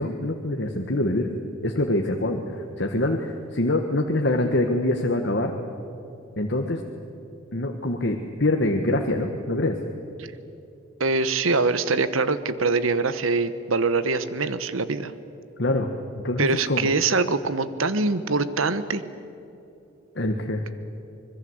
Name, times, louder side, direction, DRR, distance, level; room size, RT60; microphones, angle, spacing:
voice 1, 0.0-1.3 1.6-5.5 6.4-6.8 7.5-9.8 15.6-15.9 16.1-16.9 20.1-20.6, left 1 dB, 55° left, 3 dB, 1.4 m, -25 dB
voice 2, 11.0-15.1 16.4-19.0, right 3 dB, 85° right, 13 dB, 1.1 m, -23 dB
25.5 x 21.5 x 8.0 m, 2.8 s
head